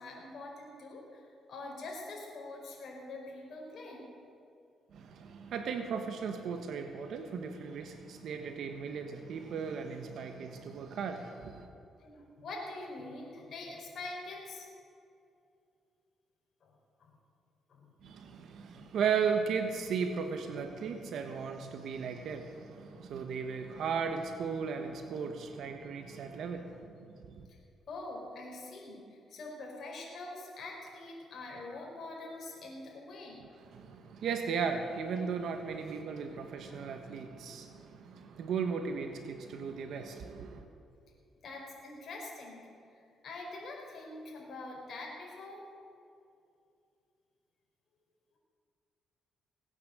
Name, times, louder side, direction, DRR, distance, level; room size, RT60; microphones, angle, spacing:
voice 1, 0.0-4.1 12.0-14.7 16.6-16.7 17.0-17.1 17.7-17.9 18.7-18.9 22.9-23.0 27.9-29.0 29.3-33.5 41.4-42.6 42.9-45.6, left 2 dB, 55° left, -2 dB, 4.9 m, -44 dB
voice 2, 4.9-11.7 18.0-27.4 33.6-40.6, right 6 dB, 70° right, 6 dB, 1.2 m, -36 dB
18.5 x 9.4 x 8.0 m, 2.5 s
cardioid pair, 105°, 0 cm